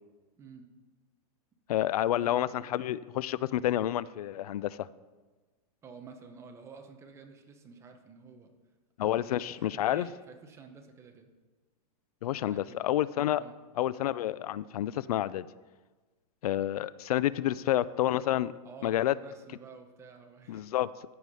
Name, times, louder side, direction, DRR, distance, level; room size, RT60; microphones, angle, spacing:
voice 1, 1.7-4.9 9.0-10.1 12.2-13.4 13.8-15.5 16.4-18.5 18.8-19.1 20.5-20.9, left 13 dB, 75° left, 19 dB, 0.4 m, -29 dB
voice 2, 2.2-2.8 5.8-8.5 9.0-11.3 12.3-12.8 13.3-13.6 17.4-17.6 18.6-20.7, right 4 dB, 15° right, 5 dB, 0.9 m, -50 dB
14.0 x 5.0 x 5.5 m, 1.3 s
supercardioid pair, 160°, 19 cm